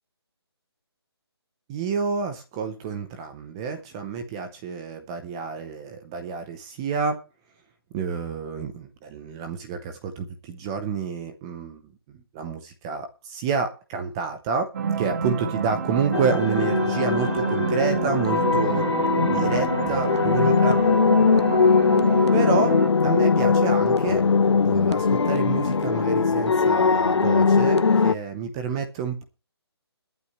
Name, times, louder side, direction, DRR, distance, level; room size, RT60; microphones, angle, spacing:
voice 1, 1.7-7.2 7.9-11.8 12.1-14.7 15.0-18.9 19.3-20.8 22.3-24.2 24.6-29.2, right 5 dB, 10° right, 7 dB, 0.7 m, -29 dB
sound 1, 14.7-22.9, right 6 dB, 40° right, 1.5 m, -28 dB
sound 2, 16.1-28.1, left 5 dB, 80° left, 0.8 m, -20 dB
21.5 x 8.5 x 3.1 m, 0.33 s
hypercardioid pair, 170°, 14 cm